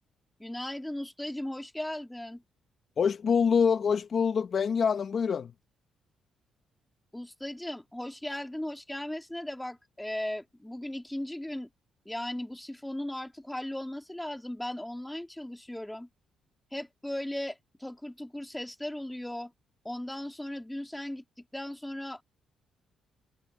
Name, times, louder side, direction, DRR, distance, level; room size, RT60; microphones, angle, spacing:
voice 1, 0.4-2.4 7.1-11.7 12.0-16.1 16.7-19.5 19.8-21.2 21.5-22.2, left 1 dB, 5° left, 3.0 m, -37 dB
voice 2, 3.0-5.5, left 6 dB, 50° left, 1.0 m, -25 dB
cardioid pair, 90°, 0 cm